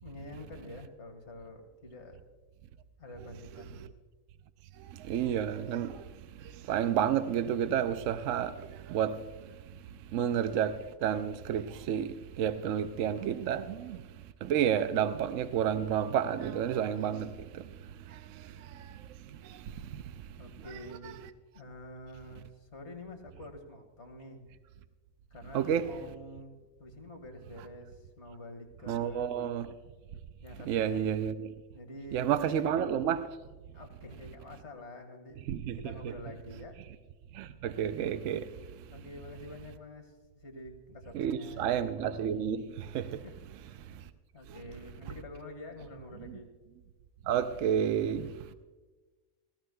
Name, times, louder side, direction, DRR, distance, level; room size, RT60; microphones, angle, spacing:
voice 1, 0.0-2.2 3.0-3.9 13.4-13.7 20.4-21.2 21.5-24.5 25.3-29.6 30.4-31.1 31.7-32.9 33.7-35.4 35.7-36.8 38.9-41.8 43.2-43.3 44.0-46.5, left 2 dB, 55° left, 2.1 m, -47 dB
voice 2, 5.0-6.0 6.7-9.2 10.1-14.0 14.4-17.7 18.1-18.2 19.4-19.6 20.7-21.1 25.5-25.9 28.9-29.7 30.7-31.5 32.1-33.3 35.5-36.1 37.3-38.5 41.1-43.2 46.3-46.4 47.3-48.3, right 9 dB, 75° right, 0.9 m, -30 dB
19.0 x 16.0 x 2.2 m
omnidirectional pair, 1.4 m